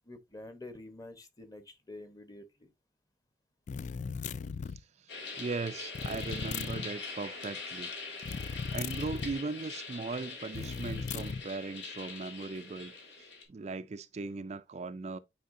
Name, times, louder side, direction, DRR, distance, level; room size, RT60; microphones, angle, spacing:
voice 1, 0.1-2.7, left 2 dB, 20° left, 0.9 m, -48 dB
sound 1, 3.7-4.8 5.9-6.9 8.2-9.4 10.5-11.4, left 5 dB, 45° left, 0.3 m, -37 dB
voice 2, 5.0-7.9 8.7-12.9 13.2-15.2, right 3 dB, 40° right, 0.4 m, -38 dB
sound 2, 5.1-13.4, left 4 dB, 85° left, 2.3 m, -43 dB
9.4 x 4.4 x 2.6 m
head